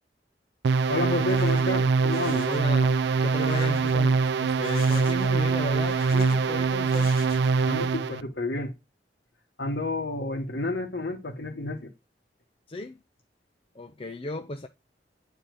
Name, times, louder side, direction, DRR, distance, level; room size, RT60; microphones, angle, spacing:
sound 1, 0.6-8.2, right 4 dB, 70° right, 0.4 m, -23 dB
voice 1, 0.9-2.5 7.7-8.7 9.6-11.9, left 2 dB, 75° left, 1.5 m, -30 dB
sound 2, 1.1-1.7 2.1-2.6 3.2-4.1 4.5-5.4 5.7-6.5 6.9-7.6, left 4 dB, 55° left, 2.0 m, -43 dB
voice 2, 2.5-7.2 12.7-13.0 13.7-14.7, left 2 dB, 30° left, 0.6 m, -35 dB
10.5 x 4.3 x 6.5 m
head